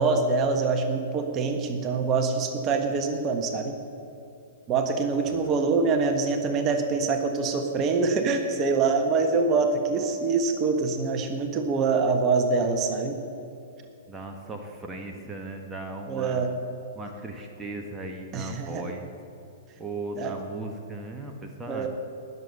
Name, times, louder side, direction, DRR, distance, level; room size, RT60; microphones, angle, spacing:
voice 1, 0.0-3.7 4.7-13.1 16.1-16.5 18.3-18.8 20.2-20.3 21.7-21.9, right 4 dB, 30° right, 5 dB, 1.4 m, -25 dB
voice 2, 14.1-16.4 16.9-19.1 19.8-21.9, right 2 dB, 10° right, 1 dB, 1.3 m, -37 dB
19.0 x 7.1 x 6.6 m, 2.6 s
figure-of-eight pair, 110°, 0 cm